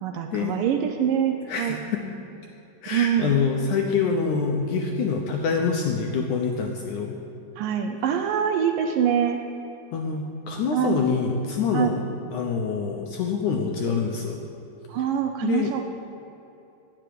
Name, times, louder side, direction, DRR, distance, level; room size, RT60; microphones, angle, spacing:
voice 1, 0.0-1.8 2.9-3.4 7.6-9.4 10.7-11.0 11.7-12.0 14.9-15.8, right 8 dB, 75° right, 5 dB, 2.1 m, -24 dB
voice 2, 1.5-2.0 2.8-7.2 9.9-12.0 12.3-14.4 15.4-15.7, left 5 dB, 70° left, 2 dB, 1.9 m, -26 dB
10.0 x 8.9 x 9.4 m, 2.8 s
omnidirectional pair, 4.4 m